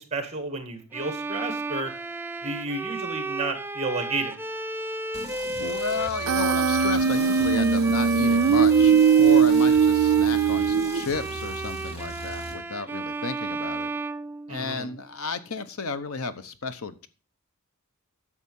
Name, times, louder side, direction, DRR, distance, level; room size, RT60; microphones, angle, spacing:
voice 1, 0.0-1.9 2.4-4.4 14.5-14.9, right 3 dB, 30° right, 7 dB, 2.0 m, -31 dB
Bowed string instrument, 0.9-15.0, right 2 dB, 10° right, 0.5 m, -33 dB
sound 1, 5.1-12.5, right 1 dB, 30° left, 2.7 m, -40 dB
voice 2, 5.6-13.9 14.5-17.1, left 4 dB, 75° left, 12 dB, 1.0 m, -33 dB
Human voice, 6.3-11.2, right 6 dB, 65° right, 0.5 m, -20 dB
11.0 x 7.1 x 5.5 m, 0.35 s
head